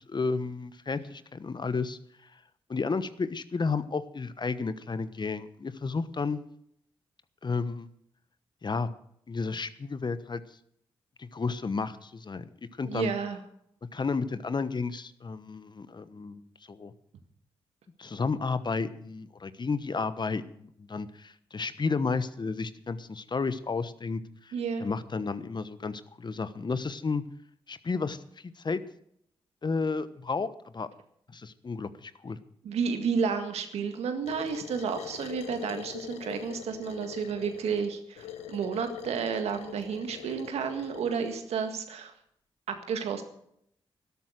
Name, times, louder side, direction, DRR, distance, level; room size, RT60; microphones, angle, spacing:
voice 1, 0.0-2.0 2.7-6.4 7.4-7.9 8.6-8.9 9.3-10.4 11.2-12.5 12.8-13.1 13.9-16.9 18.0-24.5 24.8-27.2 27.7-28.8 29.6-30.5 30.7-30.9 31.3-32.4, left 4 dB, 45° left, 14 dB, 1.1 m, -32 dB
voice 2, 12.8-13.4 24.5-24.8 32.6-42.1 42.7-43.2, right 6 dB, 85° right, 7 dB, 1.8 m, -31 dB
sound 1, 34.2-41.4, left 9 dB, 90° left, 1.1 m, -43 dB
13.0 x 12.0 x 6.4 m, 0.70 s
supercardioid pair, 40°, 11 cm